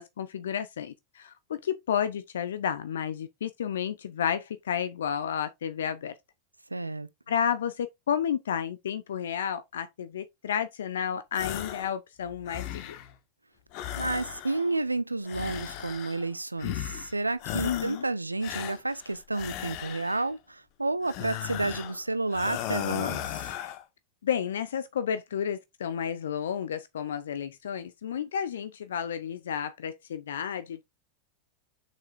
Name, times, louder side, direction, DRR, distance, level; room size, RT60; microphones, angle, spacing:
voice 1, 0.0-6.1 7.3-13.0 17.6-18.0 24.2-30.8, left 8 dB, 65° left, 0.7 m, -31 dB
voice 2, 6.7-7.1 14.0-23.2, right 2 dB, 85° right, 0.6 m, -31 dB
sound 1, 11.3-11.9 12.3-13.1 13.7-14.8 15.3-16.3 16.6-17.1 17.4-18.1 18.4-20.3 21.0-22.0 22.3-23.8, left 12 dB, 45° left, 1.2 m, -36 dB
7.3 x 6.1 x 2.5 m
figure-of-eight pair, 90°, 0 cm